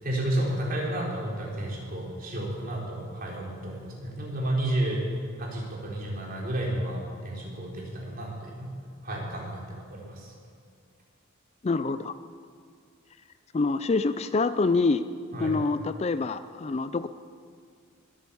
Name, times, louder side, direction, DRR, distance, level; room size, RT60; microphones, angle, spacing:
voice 1, 0.0-5.0 5.4-8.7 9.0-10.3 15.3-15.5, right 1 dB, 45° right, -3 dB, 4.1 m, -31 dB
voice 2, 11.6-12.1 13.5-15.0 15.4-17.1, left 3 dB, 30° left, 12 dB, 0.4 m, -26 dB
21.5 x 8.9 x 7.0 m, 2.2 s
head